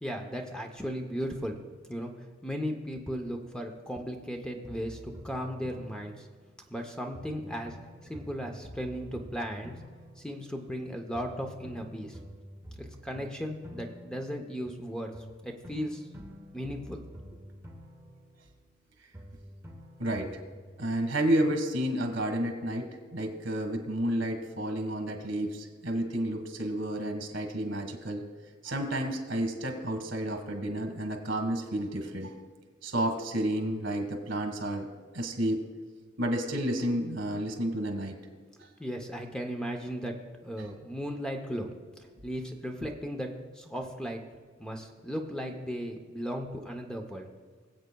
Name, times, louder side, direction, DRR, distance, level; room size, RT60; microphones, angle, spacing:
voice 1, 0.0-1.6 1.9-5.0 5.2-6.3 6.7-7.8 8.0-9.7 10.2-12.2 12.8-15.1 15.4-16.1 16.5-17.0 17.3-17.4 38.6-40.1 40.4-41.7 42.0-44.2 44.6-47.3, equal, 5° left, 3 dB, 0.7 m, -36 dB
sound 1, 4.6-6.8 7.1-10.8 11.1-14.8 15.1-18.8 19.1-20.7, equal, 15° right, 1.0 m, -48 dB
voice 2, 20.0-20.4 20.8-28.2 28.6-32.3 32.8-34.9 35.1-35.6 36.2-38.2 38.6-38.7 40.6-40.7, right 1 dB, 75° right, 5 dB, 1.5 m, -31 dB
21.0 x 7.9 x 2.3 m, 1.5 s
head